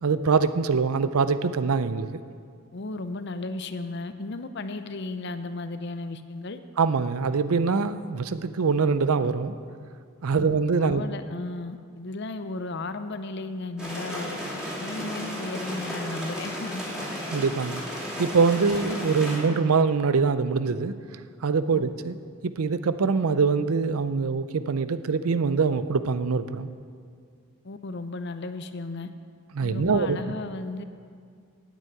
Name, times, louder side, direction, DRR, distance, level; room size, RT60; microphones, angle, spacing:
voice 1, 0.0-2.1 6.8-9.6 10.2-11.0 17.3-17.8 18.2-21.0 21.4-22.2 22.4-26.7 29.5-30.2, right 5 dB, 80° right, 13 dB, 0.5 m, -24 dB
voice 2, 2.7-6.6 10.3-10.5 10.8-14.4 14.8-16.8 18.7-18.8 21.7-21.8 27.6-29.1 29.6-30.8, left 2 dB, 50° left, 10 dB, 0.6 m, -34 dB
sound 1, 13.8-19.4, equal, 5° right, 2.8 m, -34 dB
9.3 x 8.3 x 8.9 m, 2.2 s
head